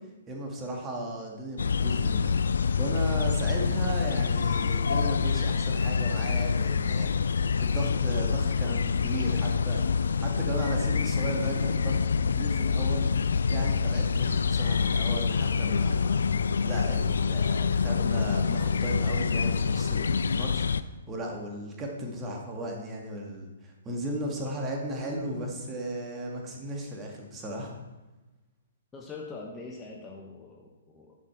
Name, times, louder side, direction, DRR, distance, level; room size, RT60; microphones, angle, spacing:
voice 1, 0.3-2.4 2.8-7.1 7.6-9.9 10.2-13.1 13.5-16.2 16.6-27.7, right 1 dB, 15° right, 0 dB, 1.9 m, -35 dB
sound 1, 1.6-20.8, left 5 dB, 65° left, 0.4 m, -26 dB
voice 2, 28.9-31.2, left 3 dB, 15° left, -1 dB, 1.2 m, -43 dB
10.5 x 7.5 x 4.6 m, 1.1 s
figure-of-eight pair, 125°, 0 cm